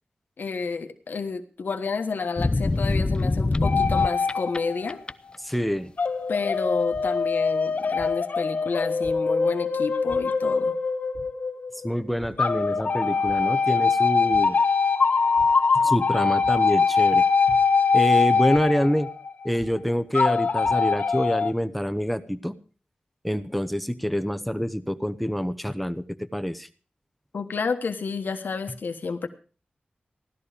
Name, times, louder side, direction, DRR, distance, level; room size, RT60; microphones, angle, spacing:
voice 1, 0.4-5.0 6.3-10.8 27.3-29.3, left 4 dB, 85° left, 6 dB, 1.3 m, -30 dB
sound 1, 2.4-4.6 4.9-5.4, left 2 dB, 30° left, 0.6 m, -24 dB
sound 2, 3.6-5.0 6.0-11.9 12.4-19.5 20.1-21.5, left 5 dB, 65° left, 1.4 m, -23 dB
voice 2, 5.4-5.9 11.8-14.6 15.7-17.6 17.9-19.1 19.4-22.6 23.2-26.7, equal, ahead, 11 dB, 1.0 m, -26 dB
sound 3, 6.9-7.0 8.0-8.1 9.0-9.1 10.1-10.2 11.1-11.2 12.2-12.3 12.7-12.9 13.2-13.3 14.3-14.4 15.3-15.5 16.4-16.5 17.5-17.6 18.5-18.6 19.6-19.7 20.4-20.7, right 1 dB, 85° right, 8.0 m, -43 dB
16.5 x 12.5 x 5.0 m, 0.38 s
wide cardioid pair, 100°, 3 cm